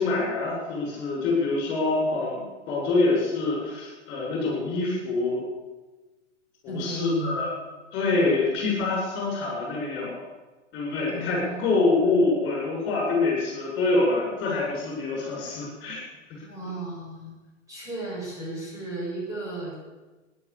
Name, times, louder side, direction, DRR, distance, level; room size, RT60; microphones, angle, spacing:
voice 1, 0.0-5.4 6.6-7.5 7.9-10.2 10.7-16.0, left 3 dB, 30° left, -2 dB, 7.6 m, -25 dB
voice 2, 6.7-7.4 11.1-12.2 16.4-17.4 17.7-19.7, right 2 dB, 10° right, -6 dB, 7.3 m, -34 dB
14.5 x 11.0 x 8.5 m, 1.2 s
figure-of-eight pair, 115°, 37 cm